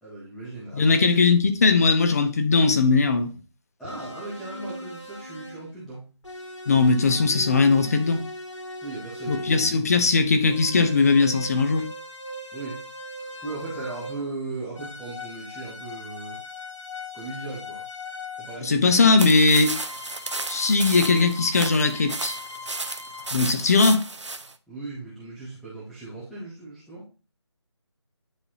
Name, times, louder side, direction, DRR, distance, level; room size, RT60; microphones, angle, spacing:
voice 1, 0.0-1.2 3.8-6.1 8.8-9.9 12.5-12.8 13.4-16.4 17.1-17.8 18.4-18.9 24.7-27.1, right 3 dB, ahead, 0.4 m, -37 dB
voice 2, 0.7-3.3 6.7-8.2 9.3-11.9 18.6-19.8 20.5-22.3 23.3-24.0, left 4 dB, 35° left, 0.8 m, -19 dB
sound 1, 3.9-5.7 6.2-9.8 10.4-14.4 14.7-18.7 19.5-23.3, left 1 dB, 90° left, 1.9 m, -39 dB
sound 2, 19.2-24.5, right 3 dB, 80° right, 0.8 m, -33 dB
9.8 x 4.1 x 2.7 m
figure-of-eight pair, 160°, 15 cm